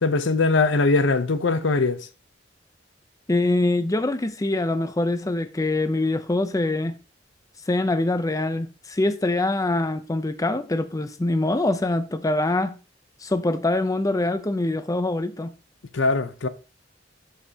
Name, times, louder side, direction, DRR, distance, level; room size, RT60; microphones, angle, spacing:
voice 1, 0.0-2.0 15.9-16.5, left 3 dB, 75° left, 0.7 m, -21 dB
voice 2, 3.3-7.0 7.7-12.8 13.2-15.5, left 2 dB, 20° left, 0.6 m, -24 dB
11.5 x 5.3 x 2.8 m
head